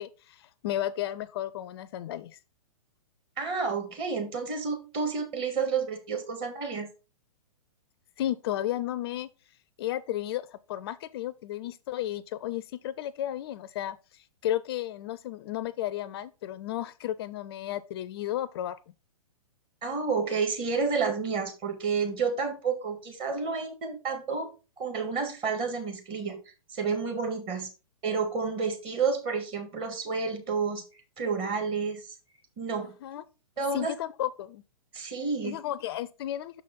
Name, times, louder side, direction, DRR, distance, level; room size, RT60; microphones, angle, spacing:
voice 1, 0.0-2.4 8.2-9.3 9.8-18.8 33.0-33.2 33.7-34.6 35.4-36.6, left 12 dB, 45° left, 0.4 m, -33 dB
voice 2, 3.4-6.9 19.8-24.5 24.8-26.4 26.7-27.7 28.0-30.8 31.2-32.1 32.6-32.9 33.6-33.9 34.9-35.6, right 5 dB, 30° right, 1.7 m, -30 dB
6.2 x 5.0 x 4.1 m
hypercardioid pair, 120°, 18 cm